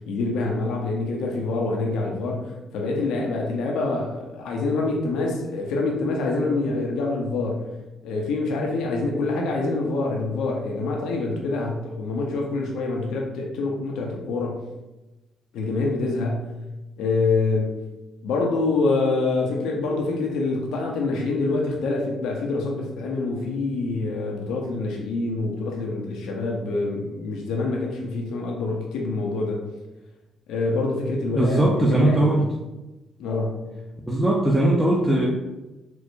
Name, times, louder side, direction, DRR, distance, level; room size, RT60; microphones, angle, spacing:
voice 1, 0.1-7.7 8.0-14.6 15.5-16.5 17.0-17.8 18.2-29.6 30.5-32.4 33.2-33.7, left 3 dB, 85° left, 0 dB, 0.6 m, -26 dB
voice 2, 31.3-32.5 34.1-35.3, right 1 dB, 10° right, -4 dB, 0.5 m, -19 dB
4.5 x 2.0 x 2.6 m, 1.0 s
cardioid pair, 90°, 0 cm